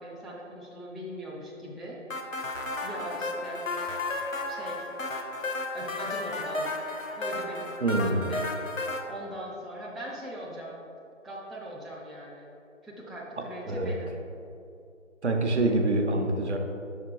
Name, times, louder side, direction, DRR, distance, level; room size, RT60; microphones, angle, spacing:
voice 1, 0.0-2.3 2.8-3.6 4.5-4.9 5.7-6.8 7.1-8.5 9.1-10.7 11.2-12.5 12.8-14.2, equal, ahead, -6 dB, 0.4 m, -40 dB
sound 1, 2.1-9.0, left 2 dB, 80° left, 0.9 m, -33 dB
voice 2, 7.8-8.3 13.4-13.9 15.2-16.6, right 2 dB, 60° right, 3 dB, 0.8 m, -26 dB
5.8 x 4.0 x 4.6 m, 2.5 s
figure-of-eight pair, 160°, 39 cm